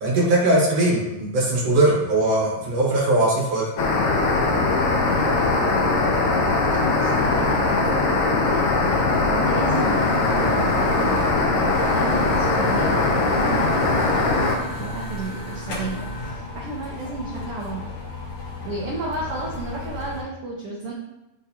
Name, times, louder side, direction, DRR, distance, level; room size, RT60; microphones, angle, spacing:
voice 1, 0.0-3.6, right 1 dB, 55° right, -4 dB, 2.0 m, -20 dB
sound 1, 3.8-14.6, left 3 dB, 85° left, 1.3 m, -20 dB
voice 2, 5.1-5.9 6.8-14.5 14.8-17.8 18.6-20.9, right 3 dB, 85° right, -3 dB, 1.2 m, -33 dB
sound 2, 9.7-20.2, left 1 dB, 50° left, 2.0 m, -33 dB
8.8 x 4.0 x 2.8 m, 0.98 s
omnidirectional pair, 3.8 m